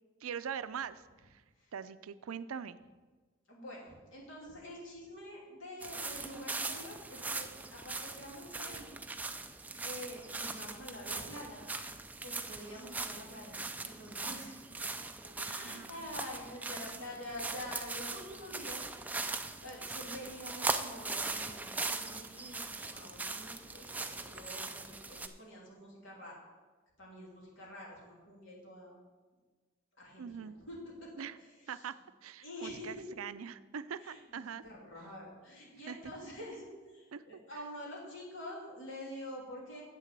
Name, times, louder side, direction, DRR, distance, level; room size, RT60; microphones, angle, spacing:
voice 1, 0.2-1.4 1.7-2.8 15.6-16.1 30.2-30.6 31.2-31.4 31.7-32.0 32.2-34.6 35.9-36.0 37.1-37.2, right 7 dB, 90° right, 14 dB, 0.5 m, -42 dB
voice 2, 3.5-8.9 9.8-11.7 12.2-14.5 15.2-18.9 19.6-26.4 27.0-29.0 30.0-31.1 32.4-33.0 34.0-34.2 34.6-39.8, left 1 dB, 65° left, -3 dB, 3.1 m, -47 dB
sound 1, 5.8-25.3, right 3 dB, 10° right, 0.3 m, -40 dB
8.3 x 6.7 x 7.4 m, 1.3 s
head